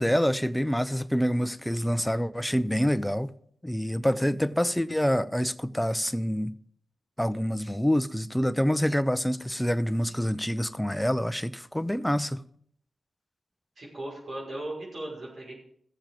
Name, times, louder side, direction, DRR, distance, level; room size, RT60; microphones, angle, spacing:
voice 1, 0.0-3.3 3.6-6.5 7.2-12.4, equal, 5° left, 0.7 m, -26 dB
voice 2, 13.8-15.5, right 1 dB, 65° right, 5.8 m, -37 dB
15.5 x 7.3 x 5.2 m
supercardioid pair, 40°, 0 cm